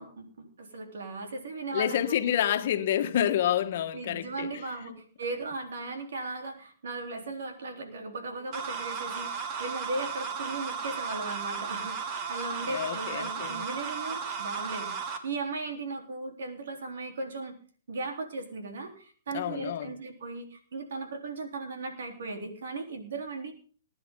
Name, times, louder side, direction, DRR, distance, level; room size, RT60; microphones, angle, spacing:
voice 1, 0.0-2.0 3.9-17.6 17.9-23.5, right 3 dB, 80° right, 3.8 m, -37 dB
voice 2, 1.7-4.5 4.9-5.0 12.6-13.7 19.3-19.9, left 10 dB, 60° left, 1.4 m, -28 dB
sound 1, 8.5-15.2, right 6 dB, 35° right, 2.2 m, -35 dB
20.5 x 10.5 x 3.9 m
hypercardioid pair, 150°, 0 cm